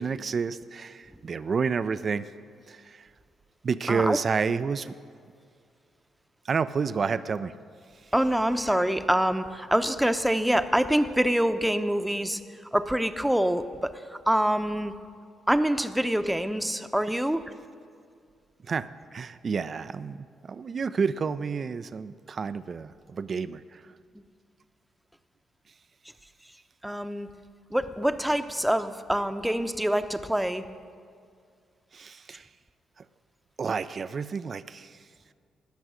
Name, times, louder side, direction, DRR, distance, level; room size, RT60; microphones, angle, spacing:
voice 1, 0.0-2.3 2.7-3.1 3.6-4.9 6.4-7.5 8.0-8.1 18.6-23.9 31.9-32.5 33.0-33.1 33.6-35.1, right 5 dB, 50° right, 15 dB, 0.4 m, -30 dB
voice 2, 3.9-4.2 8.1-12.4 12.7-14.9 15.5-17.4 26.8-27.3 27.7-30.6, equal, 5° right, 10 dB, 0.8 m, -25 dB
18.5 x 6.3 x 6.3 m, 2.2 s
hypercardioid pair, 45°, 0 cm